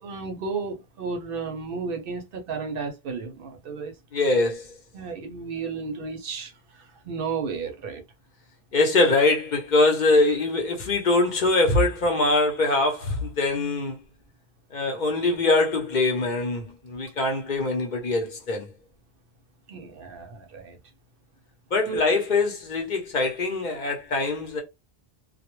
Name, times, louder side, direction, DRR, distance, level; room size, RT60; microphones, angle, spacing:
voice 1, 0.0-3.9 4.9-6.5 7.1-8.0 19.7-20.8 21.9-22.0, right 5 dB, 65° right, 0.7 m, -33 dB
voice 2, 4.1-4.7 8.7-14.0 14.7-18.7 21.7-24.6, left 2 dB, 50° left, 0.7 m, -23 dB
2.2 x 2.0 x 3.0 m
omnidirectional pair, 1.0 m